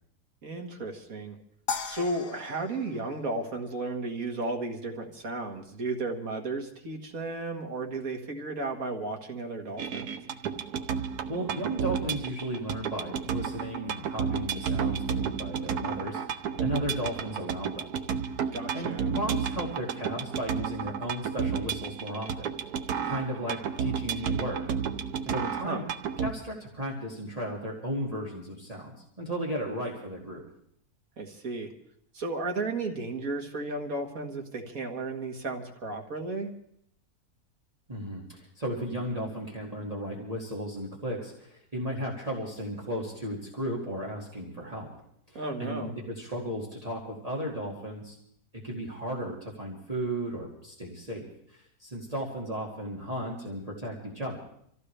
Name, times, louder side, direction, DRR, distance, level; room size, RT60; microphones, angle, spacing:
voice 1, 0.4-1.4 1.8-10.2 18.5-19.1 25.6-25.8 31.2-31.7 32.1-36.5 45.4-45.9, right 2 dB, 65° right, 3 dB, 2.0 m, -34 dB
sound 1, 1.7-4.1, left 6 dB, 65° left, 1.4 m, -38 dB
sound 2, 9.8-26.3, right 7 dB, 80° right, 1.4 m, -32 dB
voice 2, 11.3-17.9 18.4-22.5 23.0-24.6 25.3-25.8 26.2-30.4 37.9-44.9 45.3-48.2 48.6-54.4, equal, 25° right, -3 dB, 2.3 m, -35 dB
26.5 x 15.0 x 3.3 m, 0.70 s
omnidirectional pair, 1.6 m